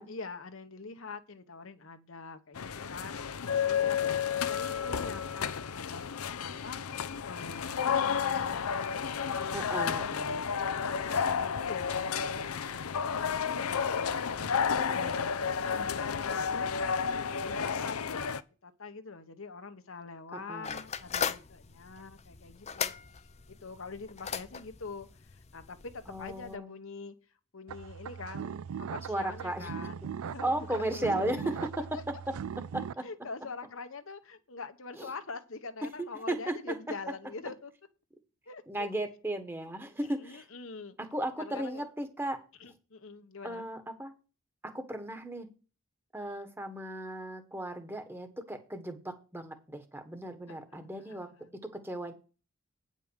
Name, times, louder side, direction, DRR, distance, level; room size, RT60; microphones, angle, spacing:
voice 1, 0.0-3.2 3.6-4.0 4.3-6.1 6.4-6.8 7.2-13.6 14.3-15.4 15.6-16.7 17.4-18.3 18.6-27.2 27.5-31.5 31.9-32.0 33.0-37.7 38.5-39.1 40.2-41.0 41.4-41.9 42.6-43.6 46.1-46.4 50.5-51.5, left 4 dB, 70° left, 1.1 m, -44 dB
sound 1, 2.5-18.4, left 6 dB, 90° left, 0.6 m, -31 dB
voice 2, 9.5-10.4 11.1-11.2 20.3-20.8 26.1-26.7 29.1-29.7 30.4-31.4 32.7-33.0 35.0-35.1 36.0-36.7 38.7-40.4 41.0-42.4 43.4-44.1 44.6-45.5 46.1-51.3 51.7-52.1, right 1 dB, 10° right, 1.3 m, -36 dB
sound 2, 20.6-26.6, left 7 dB, 30° left, 0.5 m, -38 dB
sound 3, 27.7-32.9, right 7 dB, 80° right, 0.4 m, -40 dB
9.3 x 5.5 x 6.4 m
head